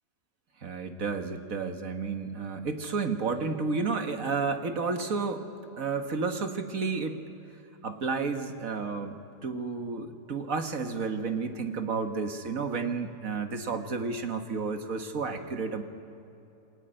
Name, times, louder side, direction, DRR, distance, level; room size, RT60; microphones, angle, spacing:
voice 1, 0.6-5.5 5.8-7.3 7.8-9.2 9.4-15.8, right 4 dB, 50° right, 6 dB, 1.8 m, -31 dB
28.5 x 20.5 x 9.0 m, 2.9 s
omnidirectional pair, 1.9 m